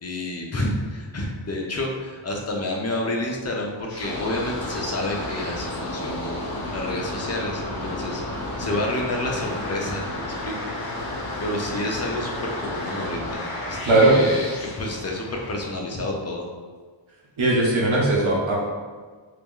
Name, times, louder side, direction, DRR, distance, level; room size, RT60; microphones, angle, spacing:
voice 1, 0.0-8.2 8.6-10.0 10.4-10.5 10.8-16.4, left 1 dB, 35° left, 0 dB, 0.7 m, -29 dB
sound 1, 3.9-15.7, left 1 dB, 50° left, 1.0 m, -32 dB
voice 2, 13.9-14.2 17.4-18.6, right 2 dB, 80° right, -4 dB, 1.1 m, -18 dB
3.0 x 2.9 x 3.7 m, 1.5 s
wide cardioid pair, 80°, 46 cm